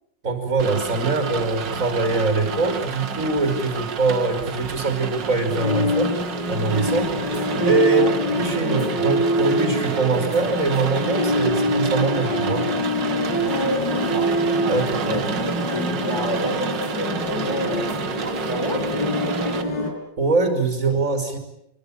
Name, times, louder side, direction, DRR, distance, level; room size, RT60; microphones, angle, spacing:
voice 1, 0.2-6.1 6.5-7.1 7.6-12.7 14.7-15.2 20.2-21.4, right 3 dB, 40° right, 7 dB, 5.8 m, -23 dB
Rain, 0.6-19.6, right 6 dB, 70° right, 2.3 m, -31 dB
sound 1, 5.5-19.9, equal, 65° left, 5.6 m, -25 dB
voice 2, 13.4-18.9 19.2-19.6, equal, 15° left, 6 dB, 4.9 m, -30 dB
26.5 x 23.5 x 9.0 m, 0.81 s
omnidirectional pair, 2.0 m